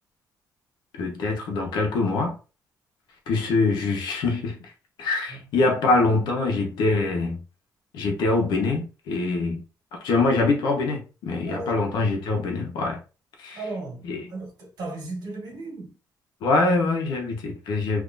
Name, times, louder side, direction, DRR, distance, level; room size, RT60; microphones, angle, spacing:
voice 1, 1.0-2.4 3.3-4.6 5.0-7.4 7.9-9.6 9.9-13.0 13.4-13.6 14.1-14.2 16.4-18.0, left 3 dB, 80° left, 1.1 m, -24 dB
voice 2, 11.5-11.8 13.5-16.0, right 2 dB, 65° right, 1.8 m, -36 dB
3.6 x 2.8 x 2.6 m
cardioid pair, 140°, 7 cm